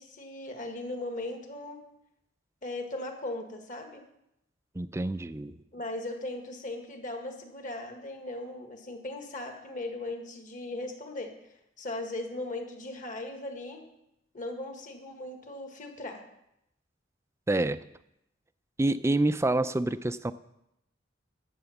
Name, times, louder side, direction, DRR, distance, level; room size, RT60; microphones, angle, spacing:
voice 1, 0.0-1.8 2.6-4.0 5.7-11.3 11.8-13.8 14.3-16.2, left 2 dB, 45° left, 4 dB, 1.8 m, -38 dB
voice 2, 4.8-5.5 17.5-17.8 18.8-20.3, right 2 dB, 15° right, 13 dB, 0.4 m, -27 dB
11.5 x 8.0 x 7.2 m, 0.83 s
head